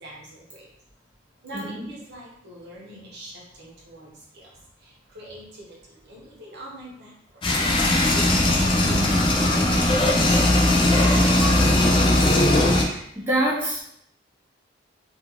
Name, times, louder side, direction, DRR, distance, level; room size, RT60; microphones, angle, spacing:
voice 1, 0.0-0.6 1.4-3.3 3.6-4.1 4.3-4.5 5.1-5.4 6.1-7.1 7.8-9.6, right 1 dB, 60° right, -3 dB, 0.8 m, -42 dB
voice 2, 1.5-1.8 12.5-13.8, right 1 dB, 10° right, -7 dB, 0.7 m, -27 dB
sound 1, 7.4-12.8, left 1 dB, 25° left, 0.4 m, -19 dB
2.4 x 2.4 x 2.9 m, 0.73 s
head